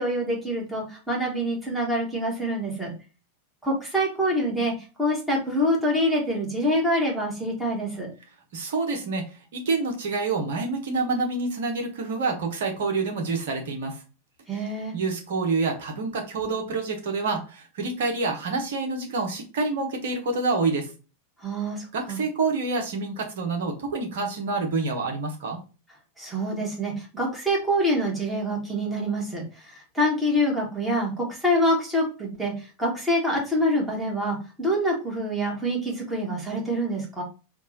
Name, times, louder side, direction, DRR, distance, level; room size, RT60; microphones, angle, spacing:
voice 1, 0.0-2.9 3.6-4.7 5.0-8.1 14.5-14.9 21.4-22.2 26.2-37.2, equal, 5° right, -3 dB, 1.6 m, -26 dB
voice 2, 8.5-14.0 14.9-20.9 21.9-25.6, right 3 dB, 55° right, 2 dB, 1.1 m, -27 dB
3.5 x 2.6 x 4.0 m, 0.33 s
figure-of-eight pair, 90°, 0 cm